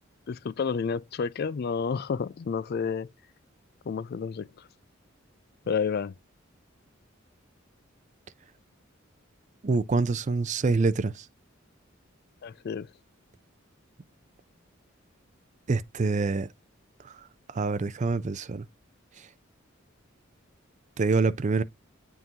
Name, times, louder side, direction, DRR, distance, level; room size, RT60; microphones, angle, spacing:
voice 1, 0.3-3.1 3.9-4.5 5.7-6.1 12.4-12.9, left 6 dB, 50° left, 0.4 m, -30 dB
voice 2, 9.6-11.2 15.7-16.5 17.0-17.1 17.5-18.6 21.0-21.6, right 4 dB, 35° right, 0.4 m, -26 dB
9.3 x 3.7 x 2.8 m
head